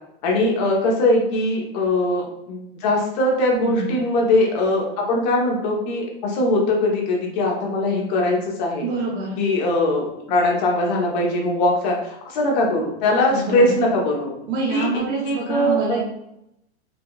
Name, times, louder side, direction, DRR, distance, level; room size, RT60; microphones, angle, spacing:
voice 1, 0.2-8.8 9.4-14.3 14.7-14.9 15.3-16.0, left 1 dB, 40° left, -1 dB, 1.0 m, -21 dB
voice 2, 3.5-4.0 8.8-9.4 13.3-13.8 14.5-16.0, right 3 dB, 60° right, -5 dB, 1.1 m, -26 dB
5.1 x 2.4 x 2.3 m, 0.80 s
supercardioid pair, 160°, 33 cm